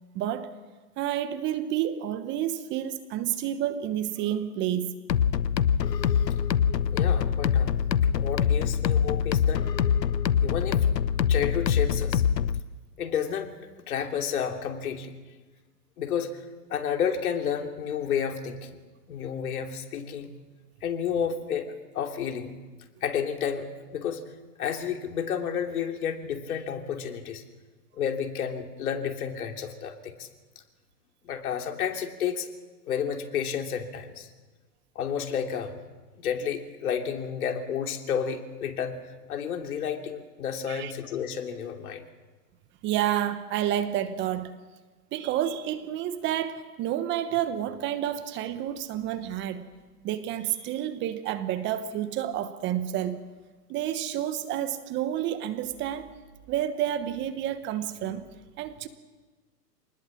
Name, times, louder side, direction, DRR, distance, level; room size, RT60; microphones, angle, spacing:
voice 1, 0.1-0.5 1.0-5.0 40.7-40.9 42.8-44.5 45.1-49.7 50.0-53.2 53.7-56.2 56.5-58.2 58.6-58.9, right 11 dB, 25° right, 11 dB, 1.1 m, -29 dB
sound 1, 5.1-12.6, left 8 dB, 90° left, 1.0 m, -24 dB
voice 2, 6.9-7.8 8.1-9.6 10.4-10.9 11.3-12.2 13.0-13.5 13.9-15.1 16.0-16.3 16.7-18.8 19.1-20.3 20.8-22.6 23.0-24.2 24.6-27.4 27.9-30.3 31.2-32.5 32.9-34.3 34.9-35.8 36.2-42.0, left 8 dB, 60° left, 4 dB, 3.1 m, -31 dB
27.0 x 20.0 x 7.3 m, 1.3 s
hypercardioid pair, 130°, 48 cm